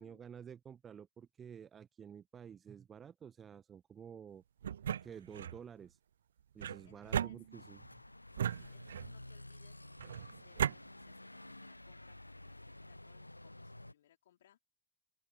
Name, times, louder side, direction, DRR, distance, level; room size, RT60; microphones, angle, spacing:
voice 1, 0.0-4.4 5.0-6.0 6.5-7.8, right 8 dB, 20° right, 0.8 m, -51 dB
sound 1, 4.6-5.6 6.6-7.9 8.4-9.2 10.0-10.8, right 9 dB, 65° right, 0.4 m, -37 dB
voice 2, 6.7-7.4 8.4-14.7, left 12 dB, 60° left, 3.8 m, -68 dB
sound 2, 7.5-13.9, left 1 dB, 85° left, 0.5 m, -52 dB
open air
figure-of-eight pair, 90°, 0 cm